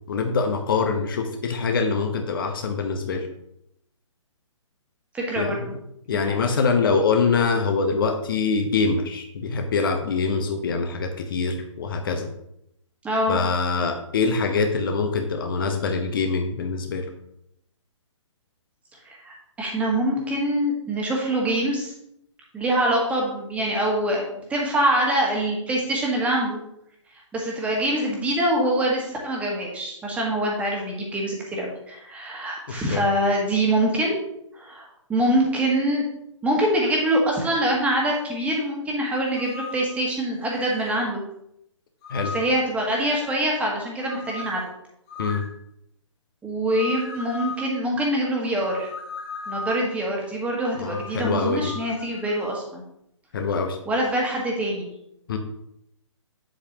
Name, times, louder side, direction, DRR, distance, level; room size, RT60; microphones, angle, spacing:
voice 1, 0.1-3.3 5.4-5.7 6.1-12.3 13.3-17.1 32.7-33.0 42.1-42.4 45.2-45.4 50.8-51.7 53.3-53.8 55.3-55.4, left 4 dB, 45° left, 5 dB, 1.0 m, -24 dB
voice 2, 5.1-5.7 13.0-13.4 19.0-21.9 22.5-26.6 27.3-34.2 34.5-36.0 36.4-41.2 42.3-44.6 46.4-48.9 49.5-52.8 53.8-54.9, right 1 dB, 10° right, -2 dB, 1.6 m, -24 dB
sound 1, 39.3-39.9 40.6-41.1 42.0-42.6 43.0-43.5 44.0-44.6 45.1-45.5 46.7-47.7 48.6-49.9 50.8-52.7, left 2 dB, 25° left, 1.5 m, -37 dB
8.4 x 7.7 x 2.9 m, 0.77 s
figure-of-eight pair, 130°, 16 cm